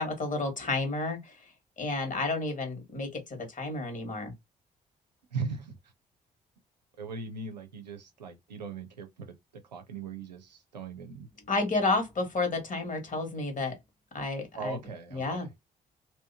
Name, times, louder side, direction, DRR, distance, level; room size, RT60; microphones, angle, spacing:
voice 1, 0.0-1.5 1.8-4.3 11.5-13.8 14.1-14.8 15.1-15.5, left 3 dB, 40° left, 1.7 m, -31 dB
voice 2, 5.3-5.8 7.0-9.3 9.6-11.3 14.5-15.5, right 4 dB, 85° right, 0.6 m, -39 dB
3.4 x 2.8 x 2.7 m
figure-of-eight pair, 40°, 21 cm